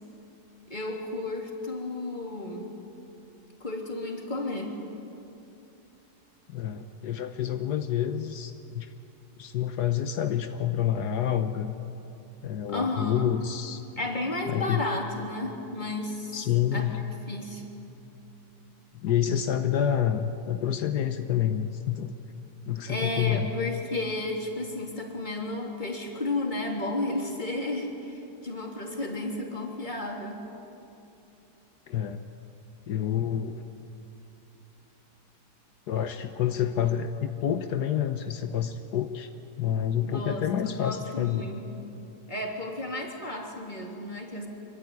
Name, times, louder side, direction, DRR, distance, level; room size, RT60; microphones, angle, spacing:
voice 1, 0.7-2.7 3.6-4.8 12.7-13.2 14.0-16.4 16.7-16.9 17.3-17.6 22.9-30.4 40.0-41.9 42.3-44.5, left 2 dB, 25° left, 0 dB, 3.6 m, -33 dB
voice 2, 6.5-8.9 9.4-11.7 12.4-13.8 14.5-14.9 16.3-17.0 18.9-22.1 22.7-23.5 31.9-32.2 32.9-33.6 35.9-39.3 39.6-41.5, left 9 dB, 80° left, 8 dB, 1.5 m, -28 dB
25.5 x 24.0 x 9.7 m, 2.8 s
omnidirectional pair, 1.7 m